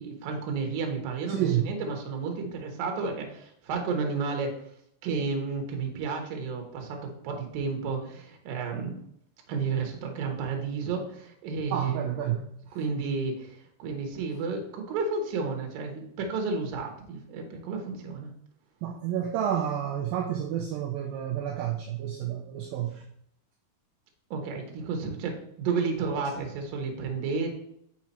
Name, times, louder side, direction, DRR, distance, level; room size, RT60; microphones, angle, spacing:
voice 1, 0.0-4.6 5.0-9.0 9.5-12.2 12.7-18.3 24.3-27.6, right 4 dB, 65° right, 2 dB, 2.7 m, -32 dB
voice 2, 1.3-1.7 11.7-12.8 18.8-23.0, right 10 dB, 90° right, 2 dB, 2.0 m, -30 dB
6.2 x 5.8 x 4.3 m, 0.70 s
omnidirectional pair, 4.9 m